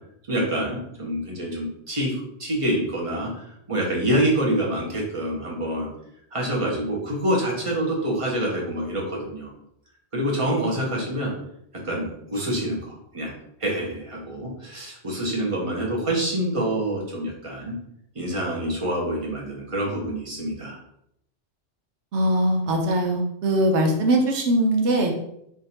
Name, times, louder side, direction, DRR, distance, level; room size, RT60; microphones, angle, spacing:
voice 1, 0.3-5.9 6.3-9.5 10.1-11.3 11.7-13.3 13.6-17.8 18.1-20.8, right 1 dB, 30° right, -2 dB, 1.0 m, -26 dB
voice 2, 22.1-25.1, right 1 dB, 70° right, 2 dB, 1.0 m, -21 dB
3.6 x 2.6 x 4.2 m, 0.77 s
omnidirectional pair, 1.3 m